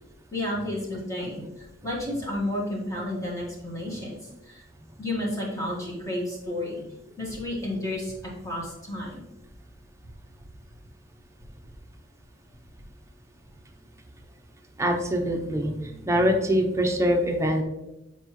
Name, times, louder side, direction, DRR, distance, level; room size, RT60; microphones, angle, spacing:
voice 1, 0.3-1.4 1.8-4.6 5.0-6.8 7.2-9.2, left 1 dB, 15° left, -4 dB, 1.7 m, -31 dB
voice 2, 14.8-15.7 16.1-17.6, equal, 15° right, 2 dB, 0.7 m, -23 dB
7.6 x 4.5 x 3.1 m, 0.95 s
head